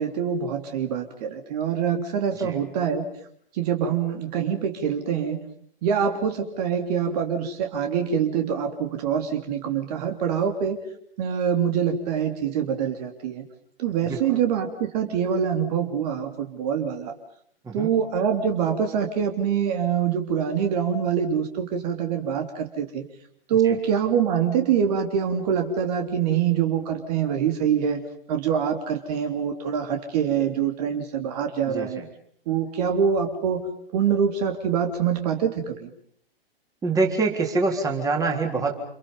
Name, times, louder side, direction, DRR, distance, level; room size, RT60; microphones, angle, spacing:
voice 1, 0.0-3.1 3.5-5.4 5.8-10.8 11.2-13.4 13.8-17.1 17.7-23.0 23.5-28.0 28.3-32.0 32.5-35.9, right 7 dB, 40° right, 5 dB, 3.3 m, -25 dB
voice 2, 14.1-14.4 17.6-17.9 23.6-23.8 31.7-32.1 36.8-38.8, right 3 dB, 10° right, 2 dB, 3.8 m, -25 dB
29.5 x 28.5 x 5.5 m, 0.64 s
figure-of-eight pair, 125°, 30 cm